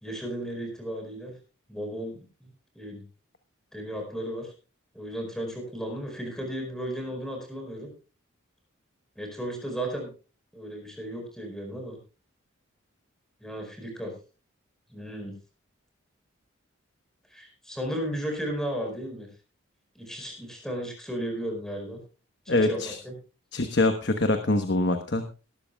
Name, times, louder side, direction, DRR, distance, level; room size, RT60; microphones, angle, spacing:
voice 1, 0.0-1.3 1.7-3.0 3.7-4.5 4.9-7.9 9.1-10.1 10.5-12.0 13.4-14.1 14.9-15.3 17.3-19.3 19.9-22.0 22.4-23.1, equal, ahead, 2 dB, 4.8 m, -34 dB
voice 2, 22.5-23.0 23.5-25.2, left 2 dB, 55° left, 7 dB, 1.1 m, -24 dB
18.5 x 12.5 x 2.3 m, 0.34 s
head